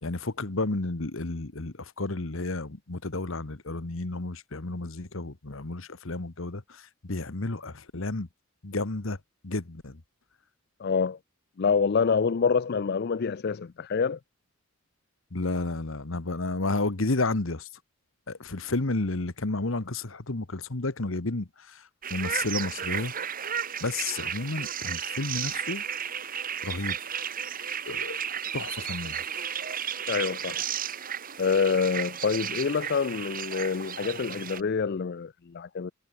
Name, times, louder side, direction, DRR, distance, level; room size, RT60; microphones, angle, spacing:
voice 1, 0.0-8.3 8.6-9.2 9.4-10.0 15.3-17.7 18.3-23.1 23.8-25.8 26.6-27.0 27.9-28.2 28.5-29.2, left 2 dB, 65° left, 1.4 m, -31 dB
voice 2, 10.8-11.2 11.6-14.2 30.1-30.6 31.4-35.9, left 5 dB, 50° left, 0.4 m, -26 dB
sound 1, 22.0-34.6, right 8 dB, 40° right, 2.5 m, -33 dB
head